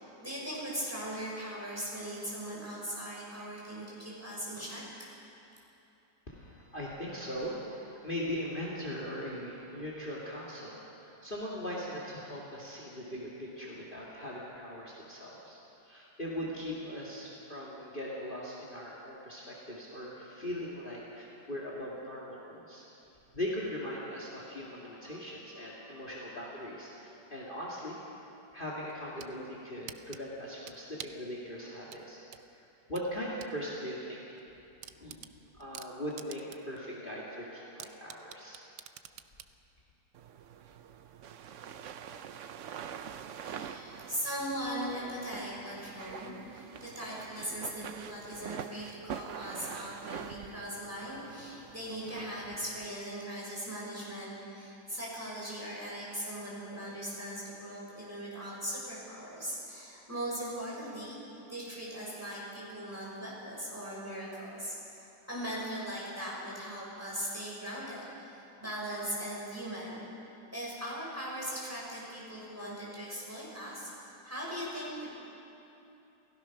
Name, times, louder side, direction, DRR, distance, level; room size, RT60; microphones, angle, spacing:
voice 1, 0.2-4.8 43.4-61.2 61.5-70.0 70.5-75.1, equal, 10° right, -6 dB, 6.0 m, -39 dB
voice 2, 6.3-15.6 15.8-22.9 23.3-28.0 28.5-32.2 32.5-34.2 35.0-35.2 35.6-38.6, equal, 30° left, -4 dB, 2.4 m, -40 dB
sound 1, 28.9-29.3 29.9-31.3 31.9-33.6 33.9-34.0 34.4-34.5 34.8-36.8 37.1-37.2 37.8-39.5, right 11 dB, 80° right, 1.4 m, -47 dB
Bed Foley, 40.1-52.9, right 8 dB, 60° right, 0.8 m, -45 dB
29.0 x 15.5 x 6.0 m, 2.9 s
omnidirectional pair, 1.9 m